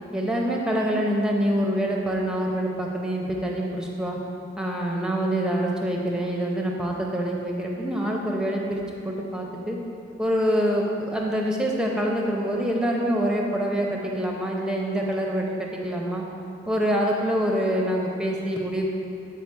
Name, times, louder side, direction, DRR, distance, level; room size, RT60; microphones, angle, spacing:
voice 1, 0.1-4.2 4.6-9.8 10.2-16.3 16.7-18.9, equal, 5° right, -1 dB, 0.6 m, -25 dB
8.2 x 4.6 x 4.6 m, 2.6 s
head